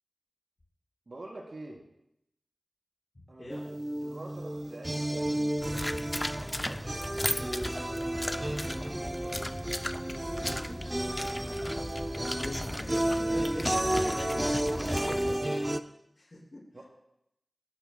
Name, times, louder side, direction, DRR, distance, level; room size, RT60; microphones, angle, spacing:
voice 1, 1.1-1.8 3.3-7.3 7.9-10.2 14.8-15.6 16.7-16.8, right 2 dB, 60° right, -1 dB, 3.8 m, -47 dB
voice 2, 3.4-3.7 8.3-8.5 11.5-11.8 12.1-14.6 16.2-16.8, left 1 dB, 45° left, -8 dB, 5.8 m, -44 dB
sound 1, 3.5-15.8, right 1 dB, 20° right, 0.7 m, -32 dB
sound 2, 5.6-15.4, left 1 dB, 15° left, 0.4 m, -36 dB
29.0 x 13.5 x 2.3 m, 0.79 s
wide cardioid pair, 70°, 0 cm